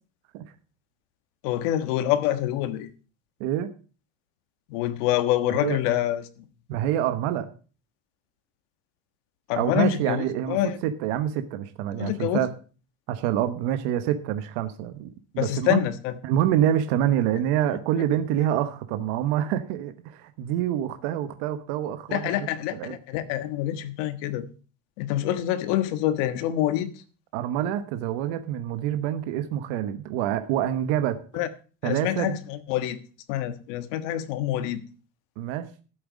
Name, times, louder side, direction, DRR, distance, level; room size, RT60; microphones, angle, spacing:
voice 1, 1.4-2.9 4.7-6.4 9.5-10.8 11.9-12.4 15.4-16.2 22.1-24.5 25.0-26.9 31.3-31.5 31.8-33.0 33.3-34.8, left 13 dB, 75° left, 11 dB, 1.5 m, -26 dB
voice 2, 6.7-7.5 9.5-10.6 10.8-12.5 13.1-15.8 16.2-22.5 22.7-23.0 27.3-31.2 31.8-32.4 35.4-35.7, right 11 dB, 70° right, 10 dB, 1.2 m, -26 dB
13.5 x 7.9 x 5.2 m, 0.37 s
cardioid pair, 155°, 37 cm